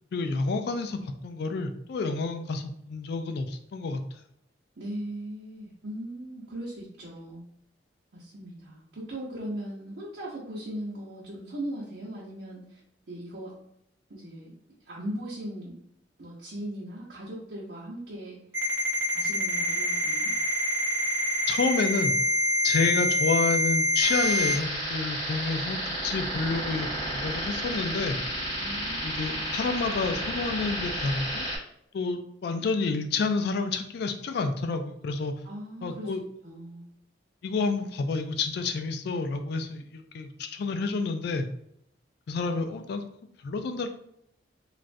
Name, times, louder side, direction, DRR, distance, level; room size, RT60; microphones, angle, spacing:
voice 1, 0.1-4.0 21.5-22.1 22.6-28.2 29.0-31.5 31.9-35.3 35.8-36.2 37.4-41.5 42.3-43.0 43.4-43.9, left 4 dB, 65° left, 7 dB, 0.3 m, -29 dB
voice 2, 4.8-7.4 8.1-12.8 13.1-13.5 14.1-14.5 14.8-15.7 16.2-18.4 19.1-20.3 28.6-29.4 35.4-36.1 36.4-36.9, right 1 dB, 70° right, -8 dB, 0.8 m, -38 dB
Ringtone, 18.5-24.5, equal, 15° right, 0.7 m, -26 dB
sound 1, 24.0-31.6, equal, 25° left, 1.2 m, -32 dB
3.2 x 2.4 x 2.5 m, 0.73 s
head